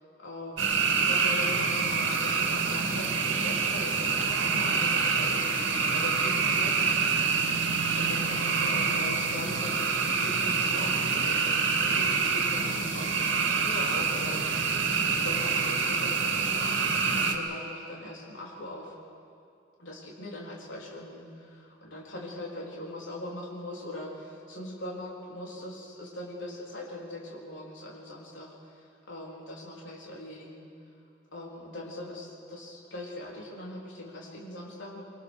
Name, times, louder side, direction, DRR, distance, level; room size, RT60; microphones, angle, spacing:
voice 1, 0.2-6.9 8.0-14.7 15.0-19.0 19.8-30.7 31.3-35.0, left 1 dB, 70° left, -4 dB, 3.8 m, -41 dB
sound 1, 0.6-17.3, right 5 dB, 70° right, 2.2 m, -26 dB
23.5 x 23.5 x 6.4 m, 2.4 s
head